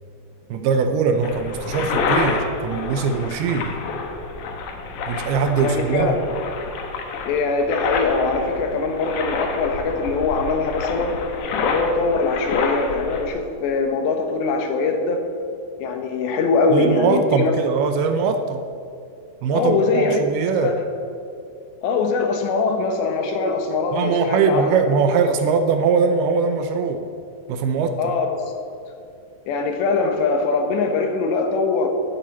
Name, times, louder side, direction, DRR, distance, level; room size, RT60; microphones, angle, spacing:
voice 1, 0.5-3.8 5.1-6.2 16.7-18.6 19.4-20.7 23.9-27.1 27.5-28.1, right 5 dB, 80° right, 8 dB, 2.5 m, -21 dB
sound 1, 1.2-13.2, left 4 dB, 60° left, 2.3 m, -28 dB
voice 2, 5.5-6.2 7.3-11.2 11.6-15.2 15.8-17.5 19.5-20.2 20.6-20.7 21.8-24.7 28.0-28.3 29.5-31.9, left 4 dB, 85° left, 4 dB, 3.5 m, -22 dB
11.0 x 8.8 x 9.5 m, 2.5 s
omnidirectional pair, 4.9 m